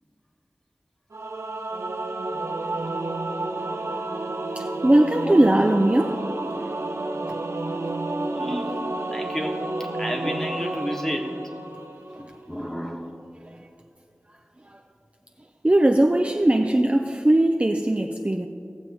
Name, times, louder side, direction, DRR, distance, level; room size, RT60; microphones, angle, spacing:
Singing / Musical instrument, 1.1-12.4, right 2 dB, 75° right, 0.7 m, -30 dB
voice 1, 4.6-6.2 13.4-13.6 14.7-14.8 15.6-18.5, right 1 dB, 25° right, 0.6 m, -20 dB
voice 2, 8.3-11.3 12.2-13.2, equal, 10° left, 1.3 m, -31 dB
17.0 x 7.3 x 4.1 m
wide cardioid pair, 45°, 5 cm